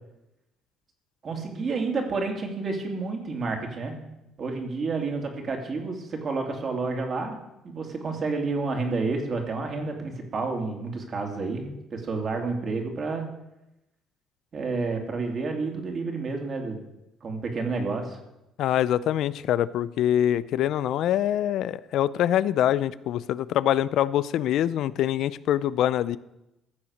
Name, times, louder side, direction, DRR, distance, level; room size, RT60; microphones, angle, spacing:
voice 1, 1.2-4.0 4.4-7.4 7.6-13.2 14.5-16.8 17.2-18.2, right 3 dB, 40° right, 2 dB, 2.7 m, -30 dB
voice 2, 18.6-26.2, left 11 dB, 70° left, 18 dB, 0.5 m, -24 dB
15.0 x 7.1 x 6.5 m, 0.90 s
cardioid pair, 110°, 0 cm